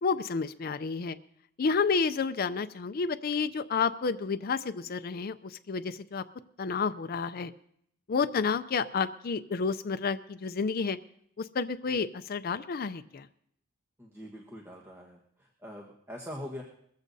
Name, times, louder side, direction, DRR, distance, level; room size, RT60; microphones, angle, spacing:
voice 1, 0.0-1.2 1.6-6.2 6.6-7.5 8.1-11.0 11.4-13.3, left 5 dB, 45° left, 10 dB, 0.4 m, -30 dB
voice 2, 14.0-15.2 15.6-16.6, left 1 dB, 10° right, -2 dB, 1.3 m, -42 dB
21.0 x 14.5 x 2.7 m, 0.70 s
head